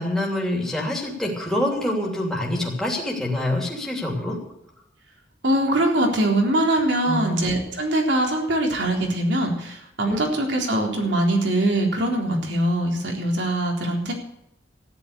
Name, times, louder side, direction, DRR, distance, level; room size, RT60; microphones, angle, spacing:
voice 1, 0.0-4.4 7.0-7.5 10.1-10.2, left 1 dB, 5° left, -2 dB, 2.9 m, -26 dB
voice 2, 5.4-14.1, right 1 dB, 80° right, 1 dB, 3.9 m, -22 dB
14.0 x 11.0 x 6.8 m, 0.81 s
head